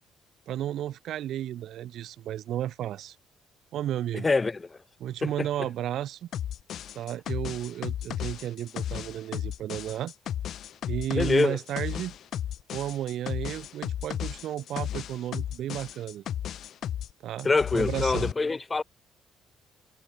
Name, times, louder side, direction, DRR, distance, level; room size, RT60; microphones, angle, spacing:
voice 1, 0.5-3.2 3.7-4.3 5.0-6.3 6.9-10.1 10.9-12.1 12.7-16.2 17.2-17.5 17.7-18.3, right 12 dB, 60° right, 2.3 m, -33 dB
voice 2, 4.1-4.8 5.2-5.3 11.1-11.6 17.4-18.8, left 3 dB, 25° left, 3.1 m, -25 dB
sound 1, 6.3-17.1 17.4-18.3, left 10 dB, 55° left, 2.7 m, -34 dB
figure-of-eight pair, 45°, 0 cm